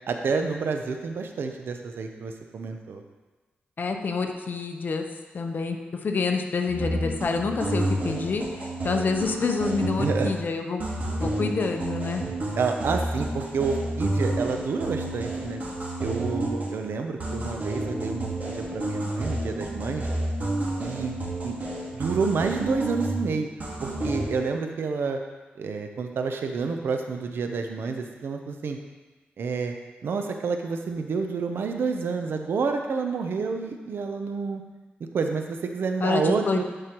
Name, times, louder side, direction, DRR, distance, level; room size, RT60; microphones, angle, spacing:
voice 1, 0.1-3.0 10.0-10.3 12.6-15.6 16.0-20.1 20.8-21.1 21.4-21.6 21.9-23.5 23.8-25.2 25.6-28.8 29.4-29.7 30.0-34.6 35.1-36.6, right 4 dB, 80° right, 5 dB, 0.7 m, -29 dB
voice 2, 3.8-5.1 5.3-10.9 11.2-12.3 36.0-36.6, left 4 dB, 55° left, 4 dB, 0.8 m, -27 dB
sound 1, 6.7-10.5 10.8-16.9 17.2-23.3 23.6-24.3, right 1 dB, 45° right, 1.8 m, -30 dB
11.0 x 4.9 x 3.0 m, 1.2 s
wide cardioid pair, 90°, 4 cm